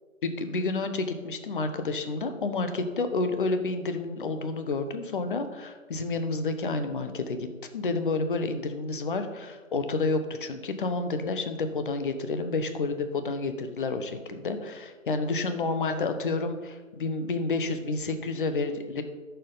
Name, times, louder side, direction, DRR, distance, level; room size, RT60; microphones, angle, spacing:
voice 1, 0.2-7.5 7.7-19.0, left 3 dB, 40° left, 8 dB, 1.1 m, -30 dB
13.5 x 6.9 x 4.0 m, 1.4 s
figure-of-eight pair, 150°, 40 cm